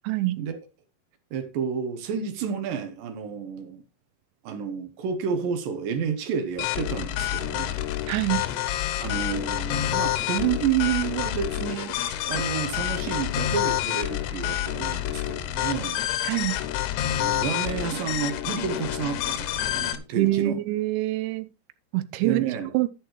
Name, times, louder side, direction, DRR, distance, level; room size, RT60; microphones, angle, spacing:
voice 1, 0.1-0.4 8.1-8.4 16.2-16.6 20.2-21.5 21.9-22.4 22.7-22.9, right 16 dB, 85° right, 3.0 m, -25 dB
voice 2, 1.3-3.8 4.4-7.8 9.0-16.0 17.1-20.6 22.2-22.7, right 8 dB, 70° right, 2.3 m, -30 dB
sound 1, 6.6-20.0, left 12 dB, 85° left, 3.2 m, -28 dB
11.0 x 10.5 x 3.1 m
omnidirectional pair, 5.2 m